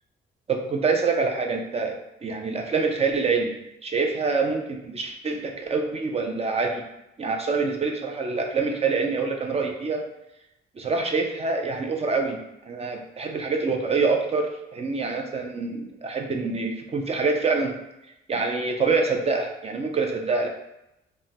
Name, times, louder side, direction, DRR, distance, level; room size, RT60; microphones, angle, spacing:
voice 1, 0.5-6.8 7.2-10.0 10.8-12.4 12.7-17.8 18.3-20.5, right 4 dB, 30° right, 3 dB, 0.4 m, -26 dB
3.3 x 2.2 x 2.8 m, 0.88 s
cardioid pair, 90°, 20 cm